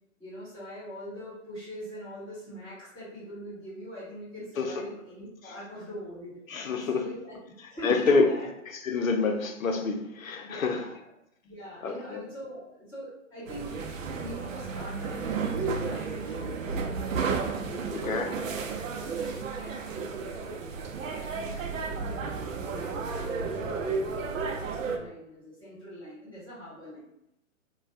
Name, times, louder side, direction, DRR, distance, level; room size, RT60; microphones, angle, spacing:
voice 1, 0.2-6.4 6.8-7.4 7.7-8.5 10.4-11.1 11.4-13.8 14.2-17.2 17.6-18.7 18.9-20.4 21.0-27.1, equal, 10° left, -12 dB, 1.2 m, -43 dB
voice 2, 6.5-7.0 7.8-8.3 8.8-10.8 11.8-12.2 17.9-18.3, left 4 dB, 85° left, 4 dB, 0.7 m, -27 dB
sound 1, 13.5-25.0, right 4 dB, 75° right, 0.6 m, -32 dB
2.6 x 2.3 x 3.1 m, 0.81 s
hypercardioid pair, 130°, 39 cm